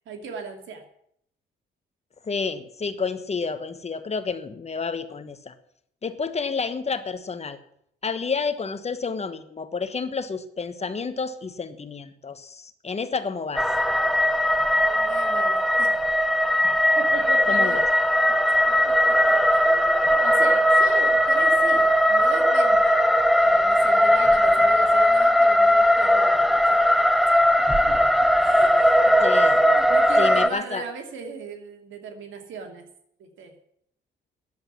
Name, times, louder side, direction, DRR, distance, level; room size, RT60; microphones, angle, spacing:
voice 1, 0.1-0.8 14.8-16.0 17.0-17.8 18.6-27.0 27.9-28.0 28.4-28.9 29.3-32.8 33.2-33.5, right 5 dB, 75° right, 5 dB, 2.6 m, -38 dB
voice 2, 2.2-5.5 6.0-7.6 8.0-13.6 16.6-16.8 17.5-17.8 29.2-29.6 30.2-30.8, left 5 dB, 35° left, 10 dB, 1.2 m, -30 dB
sound 1, 13.5-30.5, equal, ahead, 0.9 m, -19 dB
10.5 x 7.9 x 9.3 m, 0.71 s
cardioid pair, 90°, 20 cm